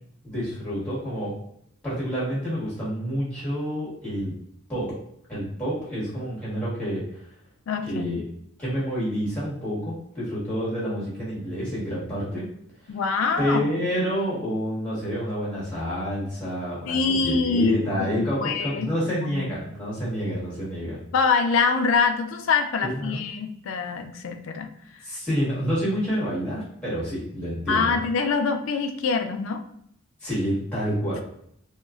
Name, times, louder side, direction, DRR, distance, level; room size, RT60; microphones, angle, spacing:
voice 1, 0.2-1.3 1.8-4.3 4.7-4.9 5.3-7.2 7.9-8.2 8.6-12.4 12.8-12.9 13.4-21.0 22.8-23.2 25.0-27.9 30.2-31.2, equal, 5° left, -9 dB, 1.2 m, -28 dB
voice 2, 7.7-8.3 12.9-13.8 16.9-18.9 19.2-19.5 21.1-24.7 27.7-29.6, left 4 dB, 70° left, 6 dB, 0.3 m, -25 dB
2.9 x 2.4 x 2.4 m, 0.69 s
head